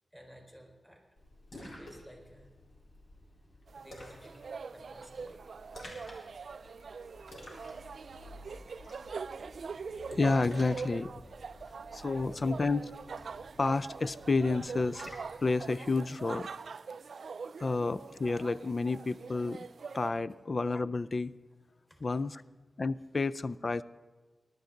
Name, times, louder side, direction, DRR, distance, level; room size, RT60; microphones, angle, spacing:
voice 1, 0.1-1.0 1.6-2.5 3.7-5.4 12.2-12.3 14.6-14.7 17.7-17.8 21.8-22.1 22.3-22.4, equal, 15° left, 1 dB, 4.4 m, -55 dB
Splash splatter, 1.2-15.4, left 1 dB, 65° left, 4.1 m, -52 dB
sound 1, 3.7-20.1, right 5 dB, 80° right, 0.3 m, -43 dB
voice 2, 10.1-11.1 11.9-12.9 13.6-15.1 15.4-16.5 17.6-19.6 19.9-21.3 22.0-22.4 22.8-23.8, left 3 dB, 50° left, 16 dB, 0.4 m, -30 dB
20.0 x 12.0 x 3.9 m, 1.3 s
wide cardioid pair, 70°, 0 cm